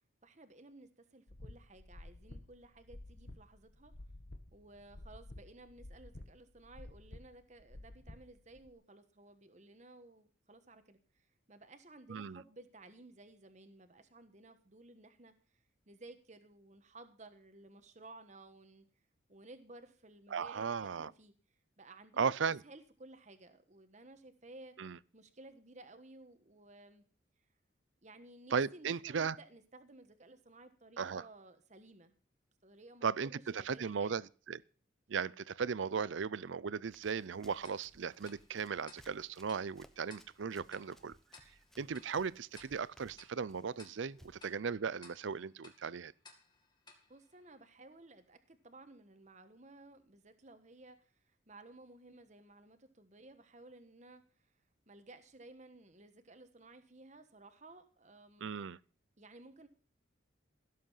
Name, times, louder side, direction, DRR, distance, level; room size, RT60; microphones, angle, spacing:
voice 1, 0.2-3.9 4.5-18.8 19.3-21.3 21.8-22.3 22.6-24.7 25.1-27.0 28.0-32.1 32.6-34.2 47.1-54.5 54.9-58.5 59.2-59.7, right 2 dB, 35° right, 1.3 m, -56 dB
sound 1, 1.3-8.7, left 1 dB, 60° left, 1.6 m, -52 dB
voice 2, 20.3-21.1 22.2-22.6 24.8-25.0 28.5-29.4 31.0-31.2 33.0-34.6 35.1-41.2 41.8-46.1 58.4-58.8, right 6 dB, 75° right, 0.5 m, -37 dB
Run, 36.9-44.5, equal, ahead, 0.9 m, -64 dB
Tick-tock, 37.6-48.1, left 3 dB, 25° left, 2.3 m, -62 dB
16.0 x 7.8 x 5.6 m
head